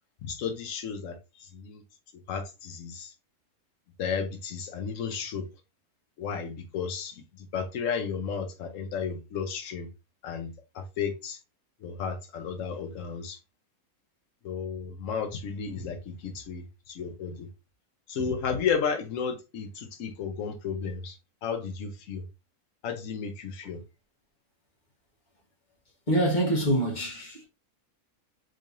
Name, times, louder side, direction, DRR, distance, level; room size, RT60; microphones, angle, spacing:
voice 1, 0.2-1.8 2.3-3.1 4.0-5.5 6.2-9.9 10.2-10.5 10.7-11.4 11.8-13.4 14.4-17.5 18.1-22.2 22.8-23.8, left 6 dB, 60° left, 1.1 m, -33 dB
voice 2, 26.1-27.4, right 1 dB, 30° left, 1.3 m, -25 dB
3.8 x 3.2 x 2.6 m
omnidirectional pair, 1.6 m